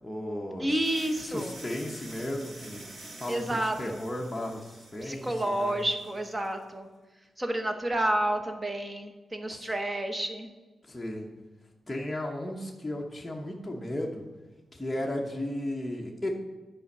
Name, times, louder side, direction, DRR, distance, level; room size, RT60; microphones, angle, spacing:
voice 1, 0.0-0.8 1.3-2.8 3.2-5.8 9.5-9.7 10.9-11.3 11.9-14.3 14.7-16.4, left 1 dB, 10° left, -2 dB, 1.0 m, -35 dB
voice 2, 0.6-1.5 3.3-4.0 5.0-6.9 7.4-10.5, right 1 dB, 20° right, 6 dB, 1.0 m, -30 dB
sound 1, 0.8-6.5, right 2 dB, 50° right, 1.6 m, -48 dB
10.0 x 5.2 x 5.5 m, 1.2 s
wide cardioid pair, 120°, 0 cm